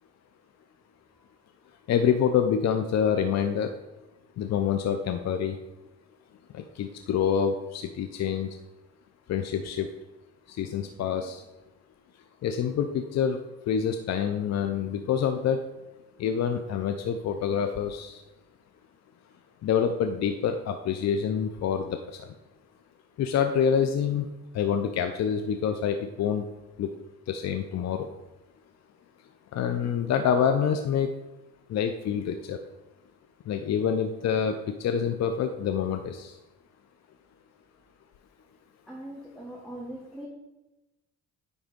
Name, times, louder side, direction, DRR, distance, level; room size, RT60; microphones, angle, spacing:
voice 1, 1.9-3.7 4.4-5.6 6.5-8.5 9.3-9.9 10.5-11.4 12.4-13.4 13.7-15.6 16.2-18.2 19.6-21.9 22.2-22.3 23.2-24.3 24.5-26.4 26.8-26.9 27.3-28.1 29.5-31.1 31.7-32.6 33.5-36.3, left 7 dB, 60° left, 7 dB, 0.6 m, -26 dB
voice 2, 38.9-40.3, right 1 dB, ahead, -4 dB, 1.5 m, -40 dB
9.6 x 3.5 x 5.2 m, 1.0 s
cardioid pair, 90°, 30 cm